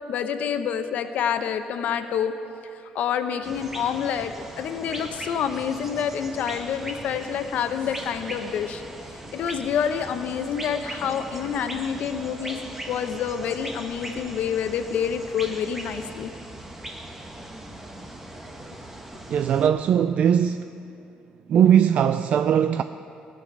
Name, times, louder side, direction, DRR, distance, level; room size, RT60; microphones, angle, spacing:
voice 1, 0.1-2.3 2.9-8.8 9.3-12.6 12.9-16.3, left 8 dB, 65° left, 0.8 m, -27 dB
sound 1, 3.4-19.7, right 1 dB, 10° right, 1.2 m, -39 dB
voice 2, 19.3-20.7 21.5-22.8, right 9 dB, 55° right, 0.3 m, -19 dB
16.5 x 6.4 x 9.3 m
cardioid pair, 130°, 3 cm